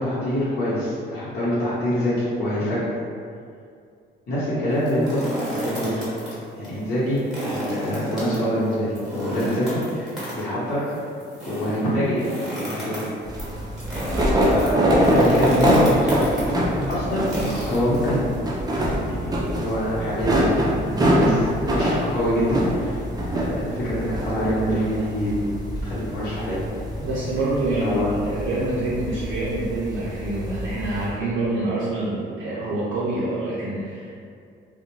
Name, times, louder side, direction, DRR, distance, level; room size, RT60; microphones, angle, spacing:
voice 1, 0.0-2.9 4.3-6.0 6.6-10.1 10.4-10.9 11.5-12.3 12.6-13.1 14.1-14.8 15.1-16.6 16.9-17.3 17.7-18.3 19.0-23.0 23.3-25.4 25.8-26.6 27.8-28.1, equal, 50° left, -12 dB, 1.0 m, -25 dB
sound 1, 4.7-6.3 6.6-6.7 7.1-18.3, right 1 dB, ahead, 1.0 m, -32 dB
sound 2, 13.2-31.1, equal, 20° right, 0.5 m, -24 dB
voice 2, 27.0-34.2, right 2 dB, 85° right, -9 dB, 0.5 m, -26 dB
2.4 x 2.1 x 3.0 m, 2.3 s
cardioid pair, 90°, 20 cm